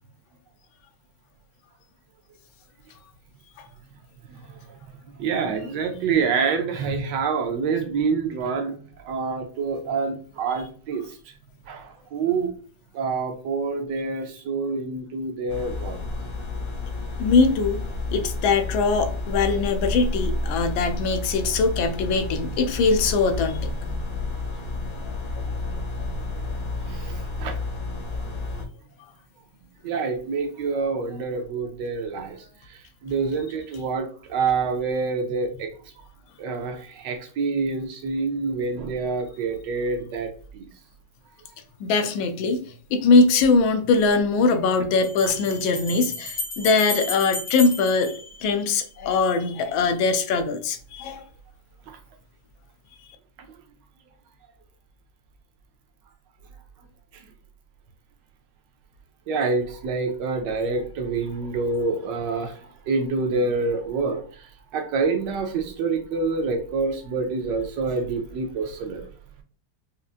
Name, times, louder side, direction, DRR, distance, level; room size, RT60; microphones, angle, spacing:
voice 1, 4.3-4.6 5.2-8.7 9.0-11.0 11.7-12.5 12.9-16.0 26.8-27.5 29.8-35.7 36.4-40.7 51.9-52.0 57.1-57.2 59.3-69.0, right 4 dB, 70° right, 5 dB, 1.2 m, -27 dB
sound 1, 15.5-28.6, left 2 dB, 60° left, 1.0 m, -30 dB
voice 2, 17.2-17.8 18.1-23.6 25.0-25.1 28.5-28.6 41.8-42.6 42.9-51.2, left 4 dB, 90° left, 7 dB, 1.4 m, -22 dB
Bell, 43.4-43.5 45.0-49.0, left 2 dB, 40° left, 1.1 m, -33 dB
5.1 x 2.3 x 2.4 m, 0.42 s
omnidirectional pair, 2.1 m